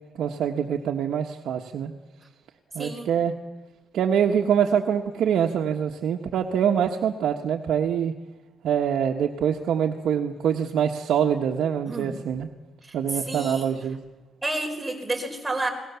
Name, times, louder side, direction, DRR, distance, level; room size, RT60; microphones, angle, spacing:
voice 1, 0.2-1.9 2.7-3.3 3.9-8.1 8.6-12.5 12.9-14.0, right 8 dB, 70° right, 2 dB, 1.4 m, -24 dB
voice 2, 2.8-3.1 11.9-12.2 12.8-13.8 14.4-15.7, right 2 dB, 10° right, 3 dB, 4.7 m, -30 dB
29.5 x 20.0 x 7.1 m, 1.2 s
cardioid pair, 110°, 0 cm